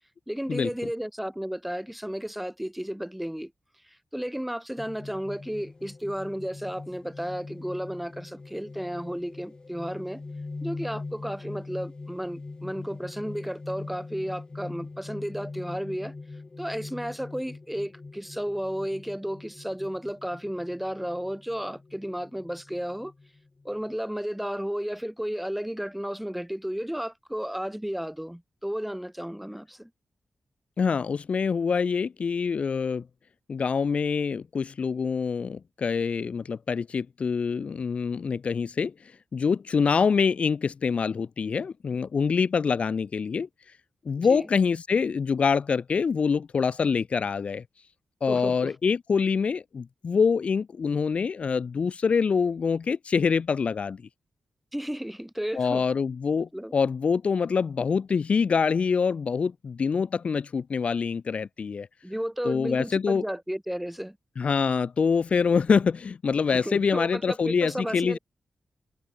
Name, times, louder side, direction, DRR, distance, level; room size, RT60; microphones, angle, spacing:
voice 1, 0.3-3.5 4.1-10.2 10.6-16.1 16.6-23.1 23.6-29.9 44.2-44.5 48.3-48.7 54.7-55.8 56.5-56.7 62.0-64.2 66.5-68.2, equal, 5° right, 2.9 m, -33 dB
sound 1, 4.8-23.9, left 3 dB, 40° left, 2.0 m, -42 dB
voice 2, 30.8-33.0 33.5-38.9 39.3-43.5 44.1-47.6 48.2-54.0 55.5-61.9 62.4-63.2 64.4-68.2, left 5 dB, 60° left, 0.8 m, -25 dB
cardioid pair, 60°, 2 cm